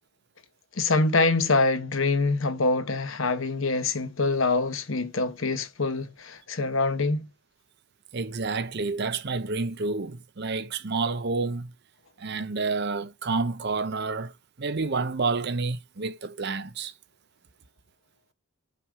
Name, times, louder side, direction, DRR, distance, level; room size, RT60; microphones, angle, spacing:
voice 1, 0.7-7.3, left 3 dB, 70° left, 1.1 m, -25 dB
voice 2, 8.1-11.7 12.2-14.3 14.6-16.9, right 3 dB, 50° right, 0.7 m, -29 dB
5.7 x 5.3 x 4.9 m
head